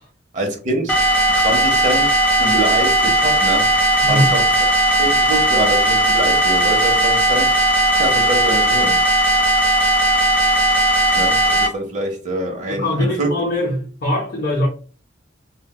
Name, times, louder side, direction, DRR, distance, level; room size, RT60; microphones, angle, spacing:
voice 1, 0.3-1.1 1.4-3.7 4.1-4.5 5.0-7.5 8.0-9.0 11.1-13.3, right 1 dB, 40° right, 0.8 m, -25 dB
sound 1, 0.9-11.7, right 1 dB, 10° left, 1.0 m, -16 dB
voice 2, 4.0-4.3 12.7-14.7, left 1 dB, 50° left, 0.7 m, -21 dB
4.0 x 2.2 x 2.2 m
head